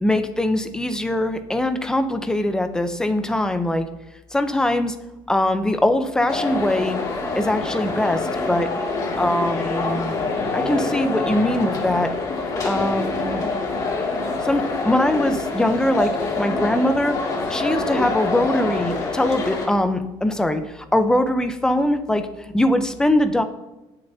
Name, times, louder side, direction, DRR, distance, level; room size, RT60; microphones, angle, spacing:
voice 1, 0.0-3.9 4.3-5.0 5.3-7.0 7.3-8.7 9.2-10.1 10.5-12.1 12.6-13.4 14.4-17.2 17.5-23.4, left 1 dB, 5° left, 7 dB, 0.8 m, -22 dB
sound 1, 6.3-19.7, left 3 dB, 35° left, 2.5 m, -26 dB
19.5 x 6.9 x 2.9 m, 1.0 s
cardioid pair, 140°, 10 cm